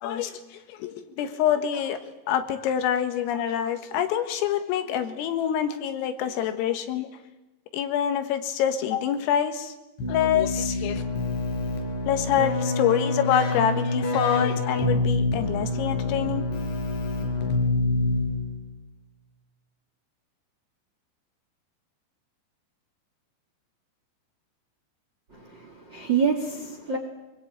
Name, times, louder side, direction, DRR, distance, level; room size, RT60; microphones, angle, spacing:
voice 1, 0.0-2.0 2.3-7.1 7.7-9.7 10.1-11.0 12.1-16.4, left 9 dB, 80° left, 8 dB, 4.1 m, -26 dB
Keyboard (musical), 10.0-18.7, left 2 dB, 65° left, 6.8 m, -27 dB
voice 2, 25.3-27.0, right 6 dB, 35° right, 3 dB, 2.0 m, -27 dB
24.0 x 21.0 x 8.8 m, 1.0 s
omnidirectional pair, 5.9 m